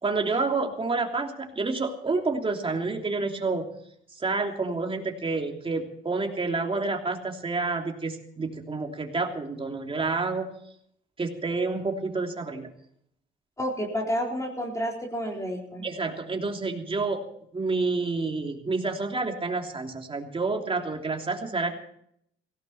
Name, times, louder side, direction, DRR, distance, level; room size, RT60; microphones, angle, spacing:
voice 1, 0.0-3.7 4.2-10.5 11.2-12.7 15.8-17.2 17.5-21.7, right 3 dB, 25° right, 2 dB, 3.1 m, -29 dB
voice 2, 13.6-15.9, equal, 15° left, 0 dB, 4.1 m, -30 dB
17.0 x 17.0 x 4.3 m, 0.69 s
cardioid pair, 90°, 20 cm